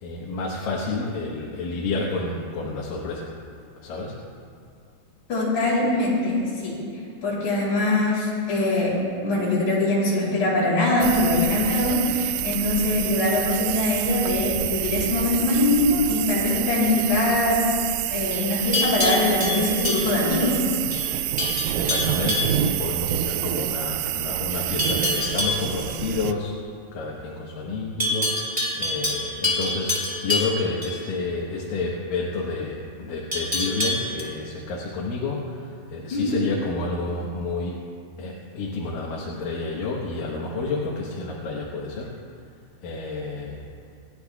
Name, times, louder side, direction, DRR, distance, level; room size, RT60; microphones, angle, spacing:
voice 1, 0.0-3.3 3.8-4.2 21.7-26.6 26.9-37.8 38.2-42.1 42.8-43.6, left 3 dB, 70° left, -3 dB, 2.9 m, -30 dB
voice 2, 5.3-6.7 7.2-8.9 9.2-17.7 18.1-20.6 36.1-36.3, left 2 dB, 50° left, -6 dB, 4.9 m, -22 dB
sound 1, 11.0-26.3, right 13 dB, 80° right, 2.2 m, -27 dB
Livestock farm animals working animals, 18.3-20.5 20.9-21.1 21.4-22.6 24.8-25.7 28.0-30.9 33.3-34.2, left 1 dB, 5° right, 1.8 m, -26 dB
28.0 x 12.0 x 2.4 m, 2.3 s
omnidirectional pair, 4.3 m